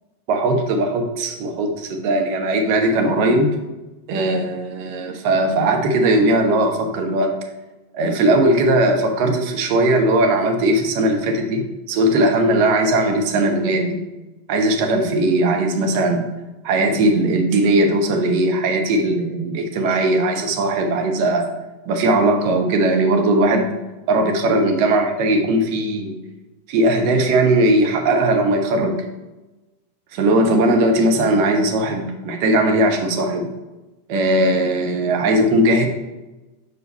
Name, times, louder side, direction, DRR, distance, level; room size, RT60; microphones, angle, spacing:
voice 1, 0.3-3.5 4.1-7.3 7.9-14.0 14.5-16.3 16.6-21.5 21.9-23.7 24.1-26.2 26.7-29.0 30.1-33.5 34.1-35.9, right 1 dB, 45° right, 3 dB, 0.9 m, -18 dB
5.0 x 4.7 x 4.2 m, 1.1 s
figure-of-eight pair, 90°, 0 cm